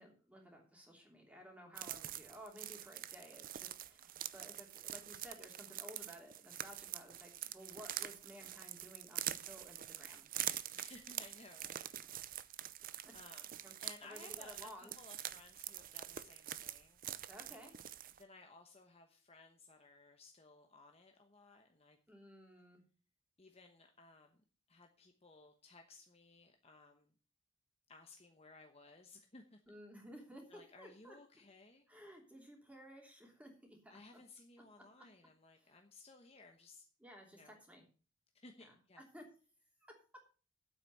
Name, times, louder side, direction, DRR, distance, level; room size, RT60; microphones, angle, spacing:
voice 1, 0.0-10.2 13.0-13.1 13.6-13.7 14.0-14.9 17.3-17.7 22.1-22.8 29.7-31.2 31.9-33.9 34.8-35.0 35.6-35.8 37.0-37.8 38.6-39.2, equal, 5° right, 1 dB, 3.0 m, -55 dB
sound 1, 1.7-18.2, right 12 dB, 40° right, 0.5 m, -45 dB
voice 2, 10.7-11.9 12.1-12.6 13.1-13.5 13.8-17.3 18.2-22.0 23.4-24.4 24.7-27.1 27.9-29.6 30.5-31.9 33.9-36.9 37.3-37.6 38.3-39.0, left 3 dB, 30° left, 4 dB, 1.0 m, -59 dB
9.1 x 8.1 x 6.7 m, 0.38 s
head